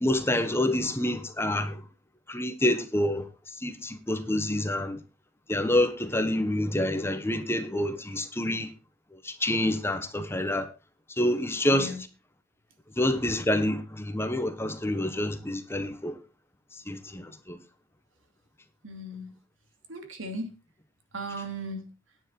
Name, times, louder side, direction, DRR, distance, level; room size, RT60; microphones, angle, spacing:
voice 1, 0.0-1.8 2.3-3.2 3.6-5.0 5.5-8.7 9.2-10.7 11.2-11.9 13.0-16.2 16.9-17.6, left 1 dB, 10° left, 1.0 m, -27 dB
voice 2, 11.7-12.0 18.8-19.3 19.9-20.5 21.1-21.8, right 1 dB, 85° right, 2.6 m, -36 dB
9.9 x 9.8 x 4.5 m
head